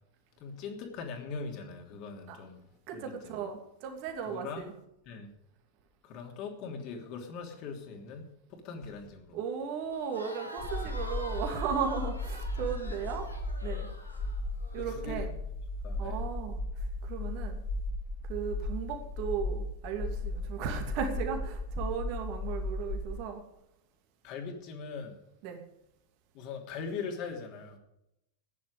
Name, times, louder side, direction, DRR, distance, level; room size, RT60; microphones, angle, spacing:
voice 1, 0.4-2.6 2.9-3.4 4.3-4.7 5.1-5.3 6.0-9.4 14.8-15.3 15.8-16.2 24.2-25.2 26.3-27.8, left 5 dB, 40° left, 3 dB, 3.1 m, -41 dB
voice 2, 2.9-4.7 9.3-13.3 13.6-13.9 14.7-15.3 16.0-17.6 18.2-23.4 25.4-25.6, right 7 dB, 45° right, 4 dB, 2.7 m, -36 dB
Crowd, 9.9-14.9, left 1 dB, 85° left, 2.8 m, -46 dB
sound 1, 10.6-23.2, left 2 dB, 25° left, 1.9 m, -36 dB
15.0 x 10.5 x 5.3 m, 0.82 s
figure-of-eight pair, 90°, 0 cm